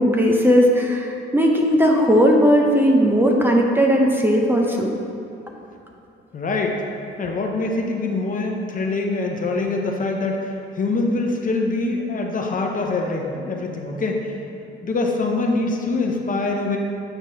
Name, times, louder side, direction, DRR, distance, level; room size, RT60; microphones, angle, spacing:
voice 1, 0.0-4.9, equal, 10° right, 0 dB, 0.7 m, -17 dB
voice 2, 6.3-6.8 7.2-14.4 14.8-16.8, left 3 dB, 40° left, 1 dB, 0.8 m, -24 dB
8.0 x 2.9 x 5.6 m, 2.6 s
cardioid pair, 90°, 20 cm